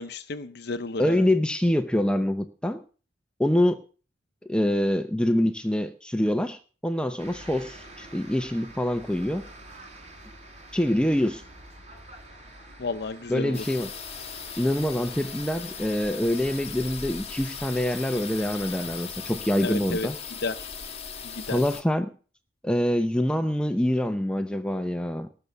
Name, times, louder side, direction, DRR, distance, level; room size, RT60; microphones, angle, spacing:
voice 1, 0.0-1.2 12.8-13.6 19.6-20.1 20.4-20.7 21.2-21.6, left 3 dB, 60° left, 0.7 m, -32 dB
voice 2, 1.0-2.8 3.4-3.8 4.5-9.5 10.7-11.4 13.3-13.9 14.6-20.1 21.5-22.1 22.6-25.3, left 1 dB, 5° left, 0.7 m, -25 dB
sound 1, 7.2-19.0, right 1 dB, 35° right, 6.5 m, -48 dB
sound 2, 13.5-21.8, left 6 dB, 35° left, 1.6 m, -38 dB
19.0 x 6.9 x 7.0 m
head